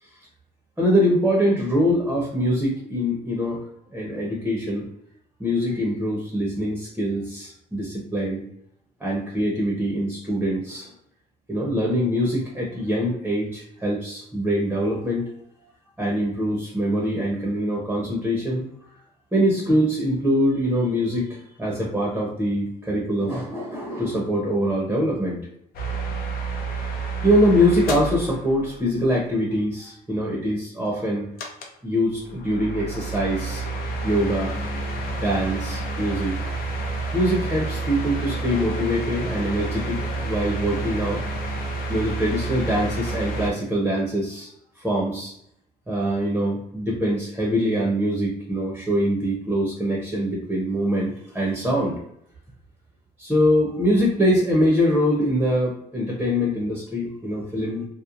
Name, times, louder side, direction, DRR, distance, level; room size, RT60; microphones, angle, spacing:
voice 1, 0.8-3.6 3.9-4.9 5.4-8.4 9.0-10.9 11.5-15.2 16.0-18.6 19.3-25.4 27.2-31.3 31.8-33.7 34.0-34.6 35.2-36.4 37.1-40.0 40.2-41.2 41.9-44.5 44.8-45.3 45.9-51.9 53.2-57.9, equal, 10° right, -3 dB, 0.7 m, -23 dB
sound 1, 25.7-29.1 31.4-31.8 32.2-43.5, right 2 dB, 60° left, 0.6 m, -29 dB
2.9 x 2.1 x 2.4 m, 0.73 s
cardioid pair, 110°, 17 cm